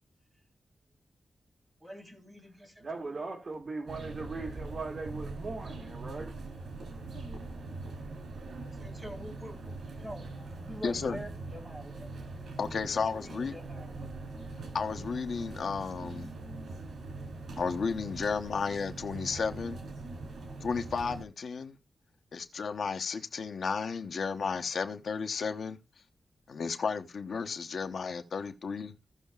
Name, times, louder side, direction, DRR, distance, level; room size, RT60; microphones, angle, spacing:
voice 1, 1.8-3.0 8.8-9.6 9.8-12.1 12.9-14.1, equal, 15° right, 3.8 m, -46 dB
voice 2, 2.8-6.3, right 3 dB, 45° right, 1.8 m, -39 dB
sound 1, 3.9-21.3, right 3 dB, 80° right, 3.4 m, -42 dB
voice 3, 10.8-11.2 12.6-13.5 14.7-16.3 17.6-19.8 20.6-21.8 22.3-25.8 26.5-28.9, left 5 dB, 70° left, 0.9 m, -33 dB
16.5 x 6.5 x 2.4 m
wide cardioid pair, 120°, 0 cm